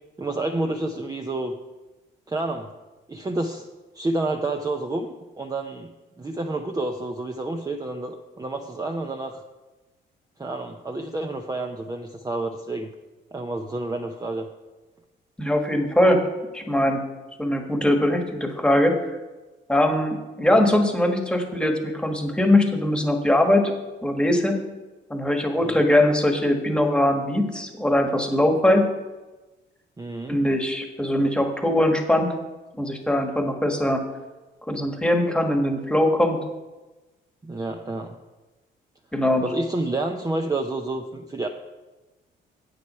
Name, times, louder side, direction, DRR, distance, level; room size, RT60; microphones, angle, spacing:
voice 1, 0.2-1.5 2.3-2.7 3.1-3.7 3.9-5.9 6.2-9.4 10.4-12.9 13.3-14.5 25.6-25.9 30.0-30.4 37.4-38.2 39.4-41.5, right 2 dB, 20° right, 3 dB, 0.7 m, -29 dB
voice 2, 15.4-16.3 16.5-17.1 17.4-19.0 19.7-23.7 24.0-24.6 25.1-28.9 30.3-32.3 32.7-34.1 34.7-36.4 39.1-39.4, left 1 dB, 5° left, 4 dB, 1.5 m, -21 dB
8.2 x 7.9 x 5.6 m, 1.1 s
cardioid pair, 90°, 20 cm